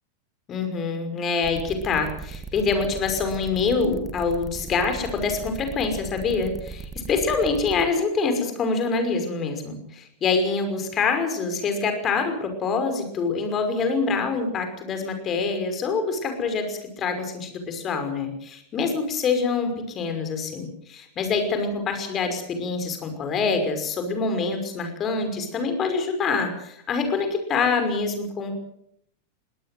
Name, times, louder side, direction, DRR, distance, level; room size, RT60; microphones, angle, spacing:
voice 1, 0.5-28.5, left 4 dB, 30° left, 6 dB, 5.7 m, -25 dB
sound 1, 1.4-7.8, right 5 dB, 10° right, 2.8 m, -38 dB
22.5 x 18.0 x 7.8 m, 0.72 s
figure-of-eight pair, 90°, 0 cm